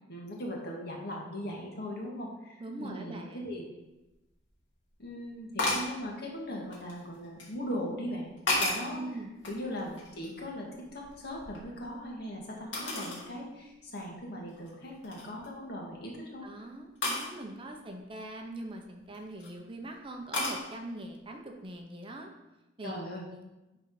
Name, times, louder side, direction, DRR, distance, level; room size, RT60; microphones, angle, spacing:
voice 1, 0.1-3.7 5.0-8.3 8.6-16.5 22.8-23.3, equal, 60° left, -1 dB, 1.9 m, -39 dB
voice 2, 2.6-3.4 8.9-9.3 16.4-22.3 22.8-23.0 23.3-23.4, right 1 dB, 30° right, 3 dB, 0.9 m, -42 dB
sound 1, 4.1-4.2 5.6-5.9 6.7-7.5 8.1-8.9 9.4-10.5 10.8-12.1 12.7-13.3 13.8-13.9 14.5-14.7 15.0-15.5 17.0-17.3 19.0-19.5 20.3-20.6, left 2 dB, 85° left, 2.4 m, -33 dB
10.0 x 4.0 x 4.9 m, 1.0 s
head